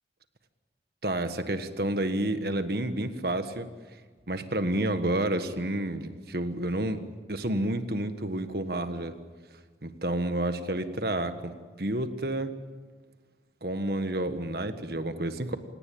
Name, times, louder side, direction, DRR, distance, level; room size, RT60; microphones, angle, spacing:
voice 1, 1.0-3.7 4.3-7.0 7.3-9.2 9.8-11.5 11.8-12.5 13.6-15.6, right 1 dB, 60° right, 9 dB, 1.5 m, -30 dB
29.0 x 18.0 x 8.7 m, 1.5 s
head